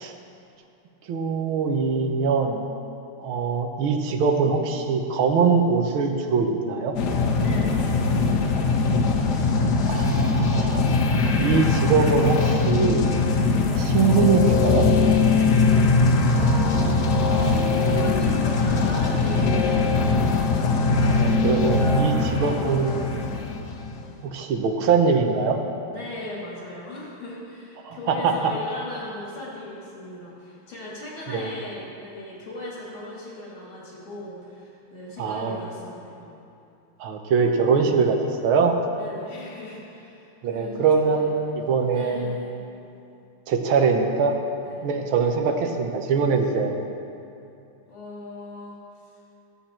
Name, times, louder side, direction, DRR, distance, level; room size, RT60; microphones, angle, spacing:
voice 1, 1.1-2.7 3.2-7.0 9.9-10.8 11.4-13.1 13.8-14.9 21.0-23.0 24.2-25.6 27.8-28.3 31.3-31.5 35.2-35.6 37.0-38.8 40.4-42.4 43.5-44.4 44.8-46.8, right 5 dB, 80° right, 4 dB, 1.8 m, -22 dB
sound 1, 7.0-24.1, left 3 dB, 60° left, 1.3 m, -21 dB
voice 2, 7.4-8.4 13.6-13.9 16.2-19.8 21.7-23.2 25.9-36.3 39.0-42.5 44.6-44.9 46.2-46.5 47.9-48.8 49.0-49.1, left 1 dB, 85° left, -4 dB, 2.9 m, -38 dB
16.5 x 8.3 x 4.4 m, 2.7 s
omnidirectional pair, 2.2 m